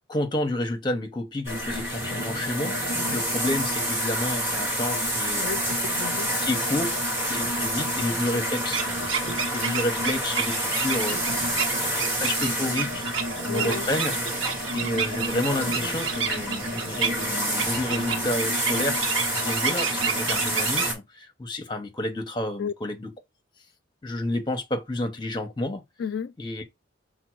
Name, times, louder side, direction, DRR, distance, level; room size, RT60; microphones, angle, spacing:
voice 1, 0.1-5.5 6.4-7.0 7.3-8.8 9.5-13.1 13.5-14.1 14.7-19.0 19.3-23.1 24.0-25.8 26.4-26.6, left 1 dB, 25° left, 0.8 m, -30 dB
sound 1, 1.4-20.9, equal, 10° right, 1.4 m, -28 dB
voice 2, 5.4-6.4 13.5-13.9 22.6-22.7 26.0-26.3, left 7 dB, 60° left, 0.3 m, -33 dB
sound 2, 8.7-20.9, right 7 dB, 75° right, 1.0 m, -31 dB
5.1 x 2.1 x 4.5 m
head